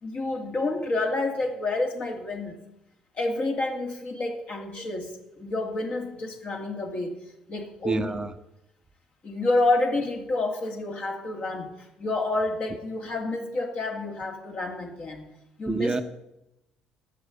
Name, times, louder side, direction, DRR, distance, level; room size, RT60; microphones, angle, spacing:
voice 1, 0.0-2.6 3.1-7.2 7.5-8.2 9.2-11.7 12.0-15.3 15.6-16.0, left 2 dB, 45° left, 3 dB, 2.5 m, -29 dB
voice 2, 7.8-8.3 15.7-16.0, right 3 dB, 20° right, 9 dB, 0.8 m, -27 dB
11.0 x 7.4 x 8.1 m, 0.90 s
hypercardioid pair, 55°, 3 cm